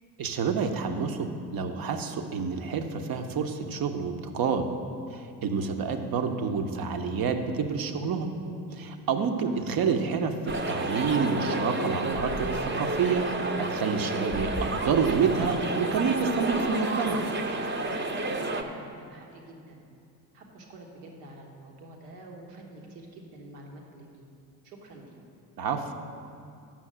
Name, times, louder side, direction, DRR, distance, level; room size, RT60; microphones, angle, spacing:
voice 1, 0.2-4.7 5.1-8.3 8.7-13.2 13.6-17.2 25.6-25.9, right 5 dB, 45° right, 6 dB, 1.0 m, -28 dB
sound 1, 10.5-18.6, right 2 dB, 25° right, 0.9 m, -30 dB
voice 2, 18.3-19.8 20.3-24.2 24.6-25.1, right 2 dB, 75° right, 0 dB, 1.5 m, -48 dB
7.3 x 6.3 x 7.5 m, 2.5 s
hypercardioid pair, 55°, 48 cm